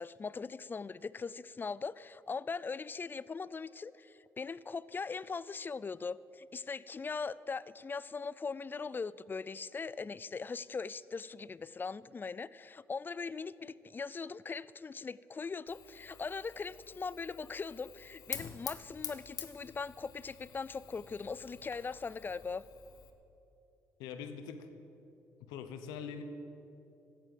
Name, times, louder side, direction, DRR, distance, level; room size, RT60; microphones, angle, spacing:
voice 1, 0.0-22.6, left 4 dB, 30° left, 19 dB, 0.4 m, -40 dB
Fire, 15.7-23.1, left 9 dB, 65° left, 1.1 m, -48 dB
voice 2, 24.0-24.7 25.4-26.2, left 7 dB, 90° left, 9 dB, 1.0 m, -43 dB
13.5 x 9.0 x 7.7 m, 2.9 s
supercardioid pair, 65°, 7 cm